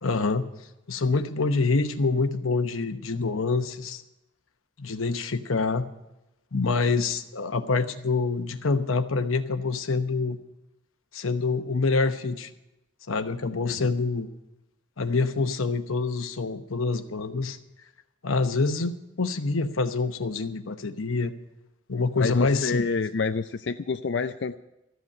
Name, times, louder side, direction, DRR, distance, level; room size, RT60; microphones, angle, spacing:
voice 1, 0.0-0.4 0.9-4.0 4.8-5.8 6.5-10.4 11.1-12.5 13.1-14.3 15.0-17.6 18.2-21.3 21.9-22.9, left 3 dB, 90° left, 9 dB, 1.0 m, -26 dB
voice 2, 22.2-24.6, left 4 dB, 60° left, 8 dB, 0.4 m, -28 dB
13.5 x 8.1 x 9.7 m, 0.92 s
head